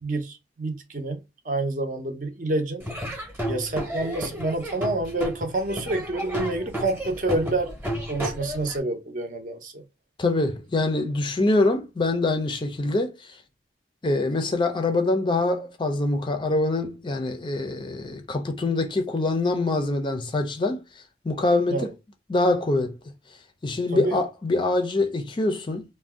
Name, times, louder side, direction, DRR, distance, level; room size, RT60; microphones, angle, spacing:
voice 1, 0.0-2.8 3.4-7.7 8.1-9.8 21.7-21.9 23.9-24.2, right 2 dB, 50° right, 0.6 m, -28 dB
Laughter / Drum, 2.8-8.8, equal, 10° right, 0.8 m, -32 dB
voice 2, 10.2-13.4 14.0-20.8 21.2-21.9 22.3-23.0 23.6-25.8, left 2 dB, 25° left, 0.4 m, -24 dB
2.5 x 2.1 x 3.5 m
head